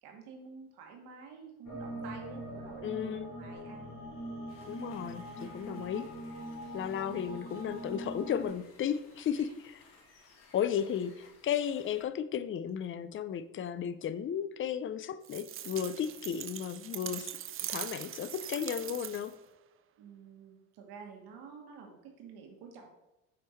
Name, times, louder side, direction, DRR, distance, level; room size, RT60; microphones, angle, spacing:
voice 1, 0.0-4.0 5.7-5.9 9.3-9.6 20.0-22.9, right 5 dB, 75° right, 1.6 m, -50 dB
sound 1, 1.6-8.5, right 1 dB, 50° left, 2.4 m, -43 dB
voice 2, 2.8-3.3 4.7-6.1 6.7-9.5 10.5-17.3 17.7-19.3, left 9 dB, 30° left, 0.4 m, -34 dB
sound 2, 4.5-12.1, left 3 dB, 70° left, 2.0 m, -60 dB
sound 3, 15.2-19.4, right 11 dB, 35° right, 0.4 m, -41 dB
6.4 x 3.7 x 4.2 m
supercardioid pair, 75°, 39 cm